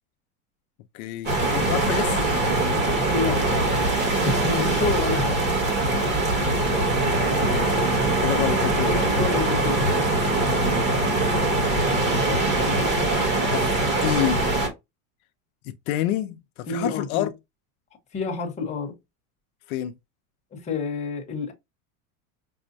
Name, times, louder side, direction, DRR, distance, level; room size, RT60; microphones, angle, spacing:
voice 1, 0.9-2.2 6.4-6.9 7.4-7.8 8.2-9.0 10.6-10.8 11.1-11.8 13.4-14.5 15.6-17.3 19.7-19.9, left 13 dB, 70° left, 0.6 m, -29 dB
sound 1, 1.3-14.7, right 2 dB, 25° right, 1.1 m, -22 dB
voice 2, 3.0-3.8 4.2-5.5 5.9-6.2 8.9-10.0 16.7-17.3 18.1-19.0 20.5-21.5, left 4 dB, 15° left, 0.9 m, -29 dB
5.4 x 2.1 x 2.6 m
supercardioid pair, 160°, 44 cm